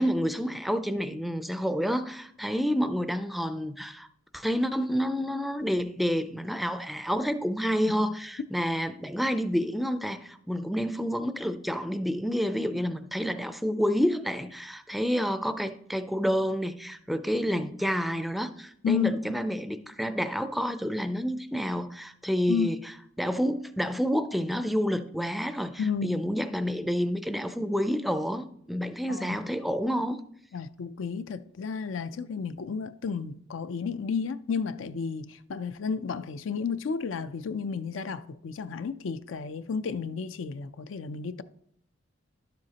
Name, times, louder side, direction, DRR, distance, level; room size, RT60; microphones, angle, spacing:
voice 1, 0.0-4.1 4.3-22.8 23.2-30.2, equal, ahead, 0.4 m, -29 dB
voice 2, 18.8-19.2 22.5-22.7 25.8-26.2 29.1-29.4 30.5-41.4, left 5 dB, 85° left, 0.4 m, -32 dB
11.5 x 7.8 x 2.8 m
head